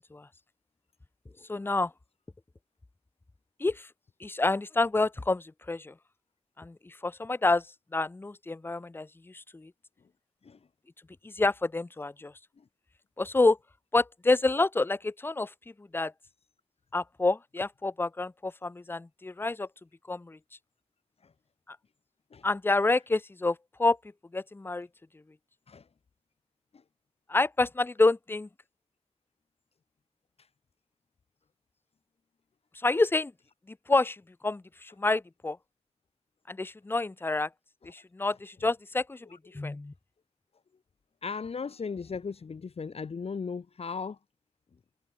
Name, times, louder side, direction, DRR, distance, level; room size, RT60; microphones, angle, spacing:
voice 1, 1.5-1.9 3.6-3.8 4.2-5.9 6.6-6.7 7.0-7.6 7.9-9.1 9.5-9.7 11.2-12.3 13.2-13.6 13.9-15.5 15.9-16.1 16.9-19.7 20.1-20.4 22.4-24.0 24.3-24.9 27.3-28.5 32.8-33.3 33.9-34.2 34.4-35.6 36.5-37.5 37.9-39.2 39.5-39.9, left 2 dB, 20° left, 0.4 m, -28 dB
voice 2, 41.2-44.2, left 5 dB, 75° left, 0.9 m, -36 dB
wide cardioid pair, 75°, 10 cm